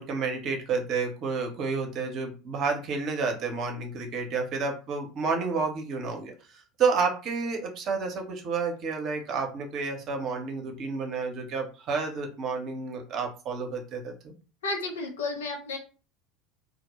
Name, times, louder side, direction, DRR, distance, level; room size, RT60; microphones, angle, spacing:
voice 1, 0.0-14.3, right 4 dB, 45° right, 3 dB, 0.7 m, -30 dB
voice 2, 14.6-15.8, left 3 dB, 75° left, 4 dB, 0.5 m, -32 dB
2.1 x 2.0 x 3.0 m, 0.35 s
figure-of-eight pair, 75°, 0 cm